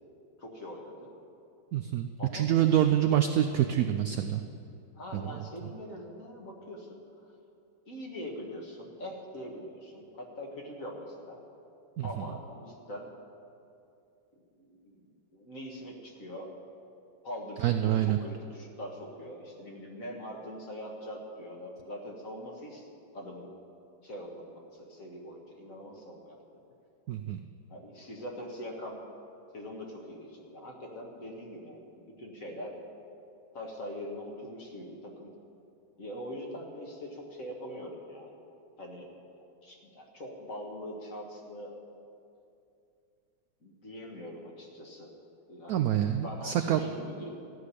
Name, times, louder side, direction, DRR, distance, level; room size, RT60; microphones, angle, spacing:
voice 1, 0.4-1.1 2.2-3.2 5.0-7.0 7.9-11.4 12.0-13.1 14.6-14.9 15.3-16.6 17.2-22.9 23.1-23.5 24.0-26.4 27.7-29.0 29.5-32.8 33.5-35.3 36.0-38.3 38.8-41.7 43.6-45.1 45.5-45.9 46.2-47.3, equal, 45° left, 0 dB, 2.0 m, -43 dB
voice 2, 1.7-4.4 5.1-5.3 12.0-12.2 17.6-18.2 27.1-27.4 45.7-46.8, right 11 dB, 80° right, 8 dB, 0.8 m, -26 dB
14.0 x 6.5 x 9.9 m, 2.6 s
omnidirectional pair, 2.1 m